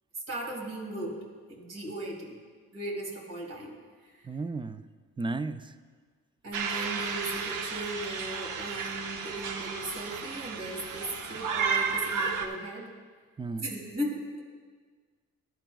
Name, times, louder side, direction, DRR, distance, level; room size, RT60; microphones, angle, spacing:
voice 1, 0.3-2.4 2.7-3.8 4.0-4.3 6.4-12.9 13.6-14.4, right 1 dB, 55° right, -1 dB, 2.3 m, -37 dB
voice 2, 4.2-4.8 5.2-5.8 13.4-13.7, right 3 dB, 15° right, 12 dB, 0.4 m, -34 dB
sound 1, 6.5-12.5, right 5 dB, 80° right, 0.9 m, -33 dB
15.0 x 10.5 x 2.3 m, 1.5 s
cardioid pair, 90°, 30 cm